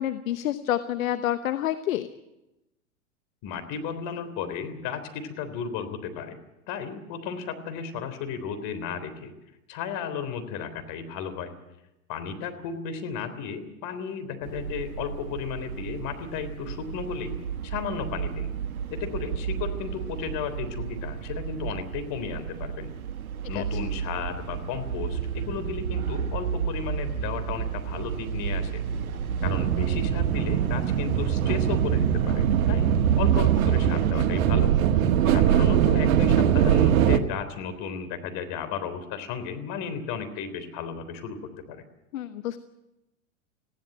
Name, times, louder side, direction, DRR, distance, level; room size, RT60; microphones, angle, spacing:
voice 1, 0.0-2.1 23.6-23.7 42.1-42.6, left 12 dB, 70° left, 11 dB, 1.1 m, -28 dB
voice 2, 3.4-6.4 6.7-9.3 9.7-11.5 12.1-17.4 17.6-18.5 18.9-22.9 23.5-28.7 29.4-32.9 33.2-41.4 41.7-41.8, left 7 dB, 50° left, 9 dB, 3.6 m, -34 dB
sound 1, 14.4-34.1, right 7 dB, 85° right, 1.4 m, -32 dB
Southend pier train, 29.4-37.2, right 10 dB, 70° right, 1.6 m, -22 dB
20.0 x 16.0 x 9.2 m, 0.94 s
hypercardioid pair, 100°, 42 cm